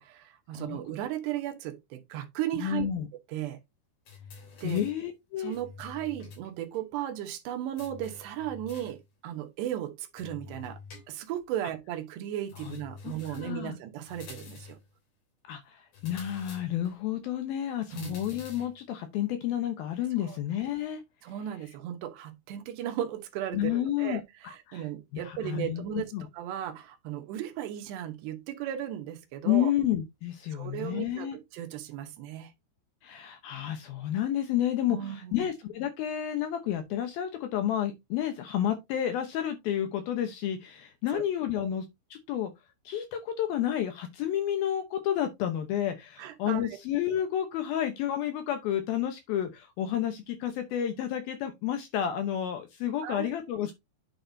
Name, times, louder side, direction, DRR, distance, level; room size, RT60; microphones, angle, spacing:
voice 1, 0.0-2.9 3.3-3.6 4.6-4.8 5.4-10.8 11.1-14.8 17.9-18.2 20.3-20.4 21.2-29.7 30.5-32.5 34.9-35.5 41.1-41.2 41.5-41.7 46.2-46.8 53.0-53.4, right 12 dB, 75° right, 3.1 m, -36 dB
voice 2, 2.6-3.1 4.6-5.6 12.6-13.7 15.5-21.0 23.5-24.9 25.2-26.3 29.4-31.4 33.0-41.8 42.1-42.5 42.9-53.7, left 11 dB, 75° left, 2.4 m, -31 dB
sound 1, 4.1-5.0 5.5-6.5 6.7-6.8 7.8-9.0 10.2-11.4 12.5-13.6 14.1-14.9 15.9-17.0 17.9-18.8, left 5 dB, 55° left, 4.8 m, -48 dB
9.0 x 6.5 x 2.7 m
omnidirectional pair, 5.1 m